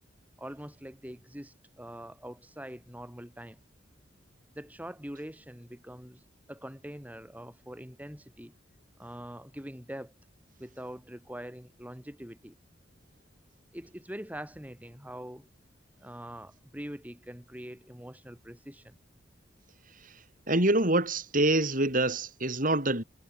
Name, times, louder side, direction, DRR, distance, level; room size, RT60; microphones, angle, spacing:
voice 1, 0.4-3.6 4.5-8.5 9.0-10.1 10.6-12.6 13.7-15.5 16.0-19.0, equal, 10° right, 6.6 m, -43 dB
voice 2, 20.5-23.0, right 2 dB, 45° right, 6.6 m, -25 dB
head